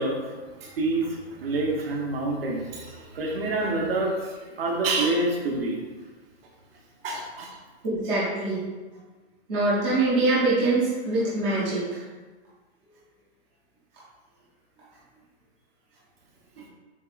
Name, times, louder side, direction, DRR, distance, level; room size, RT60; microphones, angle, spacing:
voice 1, 0.0-5.8 7.0-7.6 16.6-16.7, right 2 dB, 60° right, 0 dB, 1.0 m, -27 dB
voice 2, 7.8-8.6 9.5-12.0, right 2 dB, 10° right, -10 dB, 0.4 m, -24 dB
7.1 x 2.4 x 2.4 m, 1.3 s
hypercardioid pair, 170°, 33 cm